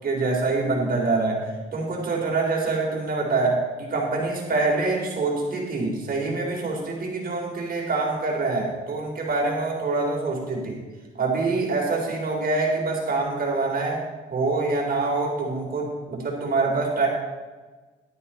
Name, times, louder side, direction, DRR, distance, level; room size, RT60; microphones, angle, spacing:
voice 1, 0.0-10.8 11.1-17.1, right 3 dB, 45° right, -1 dB, 4.2 m, -25 dB
12.5 x 10.0 x 4.5 m, 1.3 s
cardioid pair, 90°, 20 cm